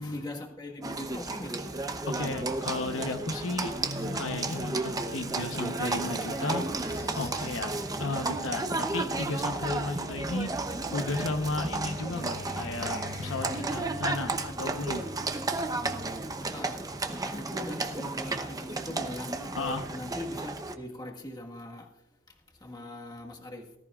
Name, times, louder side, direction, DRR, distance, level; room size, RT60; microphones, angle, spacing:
voice 1, 0.0-1.8 13.6-14.0 14.6-15.3 15.8-23.7, left 1 dB, 20° left, 1.6 m, -42 dB
Livestock farm animals working animals, 0.8-20.7, right 3 dB, 20° right, 0.8 m, -33 dB
voice 2, 2.1-6.7 7.1-7.7 8.0-10.7 10.9-15.0 19.6-19.8, left 2 dB, 75° left, 1.0 m, -34 dB
sound 1, 3.8-17.0 17.3-17.5 17.9-18.0, left 1 dB, 60° right, 2.1 m, -46 dB
sound 2, 6.8-14.7, left 1 dB, 55° left, 1.6 m, -50 dB
19.0 x 14.0 x 2.5 m
head